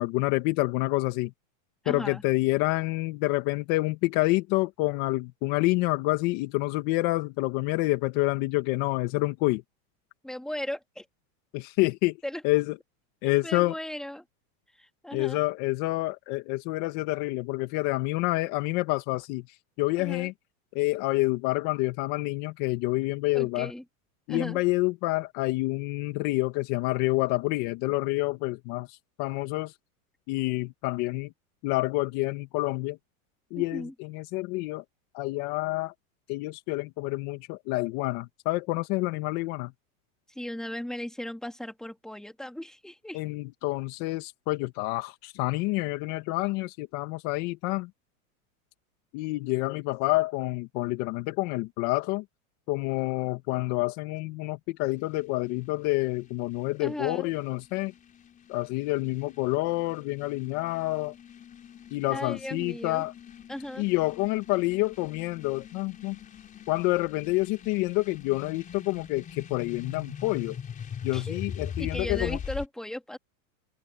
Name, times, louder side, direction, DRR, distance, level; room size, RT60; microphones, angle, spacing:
voice 1, 0.0-1.3 1.9-9.6 11.5-12.2 12.4-12.7 13.2-13.7 15.1-19.4 19.8-20.3 20.7-23.7 24.3-29.7 30.3-31.3 31.6-33.0 33.5-34.8 35.1-35.9 36.3-39.7 43.1-47.9 49.1-52.2 52.7-57.9 58.5-61.1 61.9-63.1 63.8-66.2 66.7-70.6 71.0-72.4, left 21 dB, 45° left, 2.1 m, -28 dB
voice 2, 1.8-2.2 10.2-11.1 12.2-12.6 13.2-14.2 14.7-15.4 19.9-20.3 23.3-23.8 24.3-24.6 33.6-33.9 40.3-43.2 56.8-57.3 62.1-63.0 63.5-63.9 71.1-71.4 71.8-73.2, left 1 dB, ahead, 3.7 m, -37 dB
sound 1, 54.8-72.7, left 8 dB, 20° left, 4.3 m, -42 dB
supercardioid pair, 155°, 42 cm